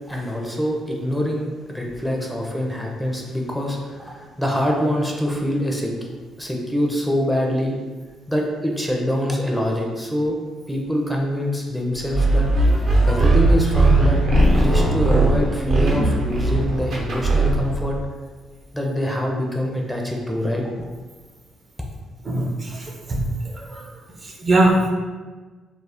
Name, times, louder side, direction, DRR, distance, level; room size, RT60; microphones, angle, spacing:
voice 1, 0.1-5.9 6.4-7.8 8.3-10.4 10.7-12.5 13.1-14.2 14.6-18.0 18.7-20.9, left 1 dB, 5° left, -1 dB, 0.5 m, -24 dB
sound 1, 12.1-17.8, right 2 dB, 70° right, 0.8 m, -18 dB
voice 2, 22.2-23.2 23.5-23.8 24.2-24.9, right 1 dB, 40° right, -1 dB, 0.6 m, -21 dB
2.4 x 2.0 x 3.4 m, 1.4 s
supercardioid pair, 65°, 0 cm